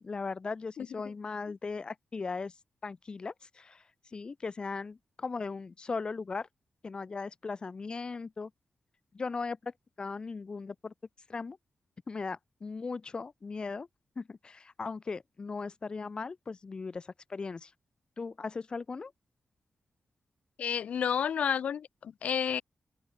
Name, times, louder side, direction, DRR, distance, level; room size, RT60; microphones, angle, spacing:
voice 1, 0.0-2.5 2.8-3.8 4.1-6.5 6.8-8.5 9.1-10.9 11.3-11.6 12.1-13.9 14.2-17.7 18.2-19.1, left 4 dB, 40° left, 3.8 m, -38 dB
voice 2, 20.6-22.6, left 8 dB, 85° left, 1.0 m, -30 dB
open air
wide cardioid pair, 100°, 2 cm